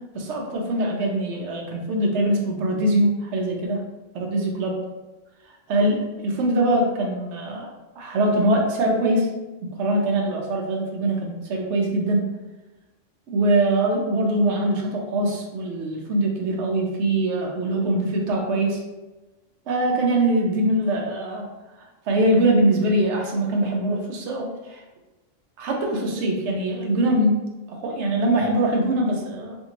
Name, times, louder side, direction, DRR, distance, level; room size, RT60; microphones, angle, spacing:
voice 1, 0.1-3.8 4.1-4.8 5.7-7.7 8.0-9.3 9.8-12.2 13.3-18.8 19.7-21.4 22.1-24.8 25.6-27.4 27.7-29.6, right 1 dB, 70° right, 0 dB, 0.9 m, -22 dB
2.7 x 2.6 x 2.8 m, 1.1 s
omnidirectional pair, 1.3 m